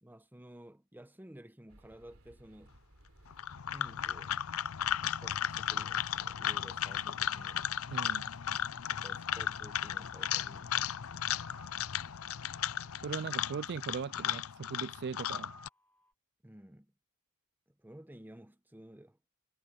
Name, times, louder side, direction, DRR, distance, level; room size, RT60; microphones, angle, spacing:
voice 1, 0.0-2.8 3.7-4.3 5.0-7.7 8.9-11.0 16.4-16.9 17.8-19.2, right 1 dB, 10° right, 0.9 m, -53 dB
sound 1, 1.7-13.2, right 1 dB, 70° right, 3.8 m, -61 dB
sound 2, 3.3-15.7, left 10 dB, 75° left, 0.5 m, -35 dB
sound 3, 5.8-16.1, left 1 dB, 5° left, 5.0 m, -61 dB
voice 2, 7.9-8.2 13.0-15.6, right 6 dB, 50° right, 0.4 m, -39 dB
head